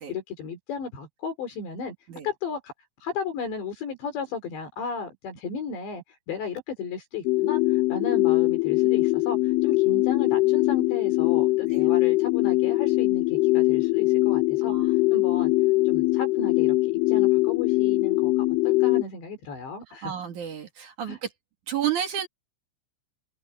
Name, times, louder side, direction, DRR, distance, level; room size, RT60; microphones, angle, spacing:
voice 1, 0.1-1.9 2.2-2.7 3.0-14.7 15.1-15.5 15.9-16.8 17.1-20.1 21.1-21.2, left 5 dB, 60° left, 5.9 m, -35 dB
sound 1, 7.3-19.0, left 21 dB, 75° left, 4.0 m, -22 dB
voice 2, 14.6-14.9 20.0-21.3 21.7-22.3, right 10 dB, 55° right, 2.4 m, -31 dB
omnidirectional pair, 5.8 m